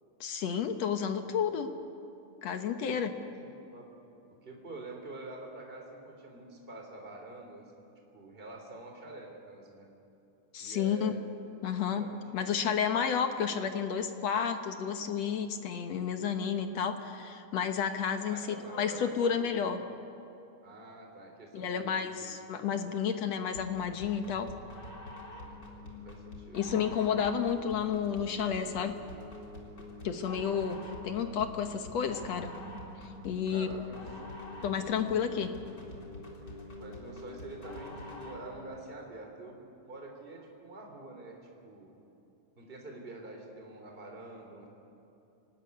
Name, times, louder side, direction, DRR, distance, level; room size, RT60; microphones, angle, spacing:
voice 1, 0.2-1.7 2.4-3.2 10.5-11.1 11.6-19.8 21.5-24.5 26.5-29.0 30.0-32.5 33.2-33.7 34.6-35.5, left 7 dB, 65° left, 7 dB, 2.1 m, -31 dB
voice 2, 2.9-3.9 4.4-7.6 8.1-9.9 10.6-11.2 11.8-12.2 18.2-19.1 19.4-19.8 20.6-22.3 22.8-23.3 25.3-26.6 33.5-34.0 34.7-34.9 36.8-42.0 42.6-44.7, right 2 dB, 15° right, 1 dB, 3.4 m, -47 dB
sound 1, 23.5-38.5, left 1 dB, 35° left, 4.2 m, -45 dB
27.0 x 19.0 x 9.7 m, 2.8 s
omnidirectional pair, 3.5 m